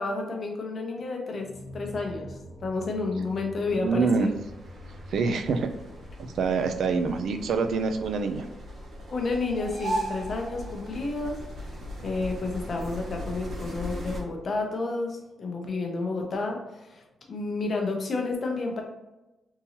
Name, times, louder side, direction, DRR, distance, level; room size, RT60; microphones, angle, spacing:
voice 1, 0.0-4.1 9.1-11.4 12.0-18.8, left 3 dB, 40° left, 1 dB, 0.6 m, -31 dB
sound 1, 1.4-10.3, equal, 80° left, 0.7 m, -47 dB
sound 2, 3.8-14.2, equal, 45° right, 0.7 m, -38 dB
voice 2, 3.8-4.3 5.1-5.7 6.2-8.5, right 4 dB, 65° right, 7 dB, 0.3 m, -26 dB
3.7 x 2.8 x 2.8 m, 1.0 s
wide cardioid pair, 165°, 0 cm